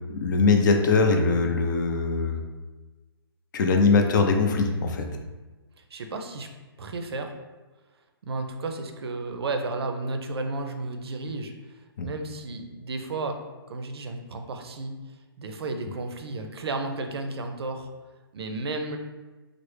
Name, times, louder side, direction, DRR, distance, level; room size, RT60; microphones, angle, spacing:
voice 1, 0.1-2.4 3.5-5.1 12.0-12.1, left 4 dB, 50° left, 4 dB, 0.4 m, -21 dB
voice 2, 5.9-6.5 6.8-7.3 8.2-11.7 12.0-14.9 15.4-17.9 18.3-19.0, right 3 dB, 80° right, 5 dB, 0.5 m, -33 dB
3.2 x 2.0 x 3.2 m, 1.2 s
hypercardioid pair, 150°, 13 cm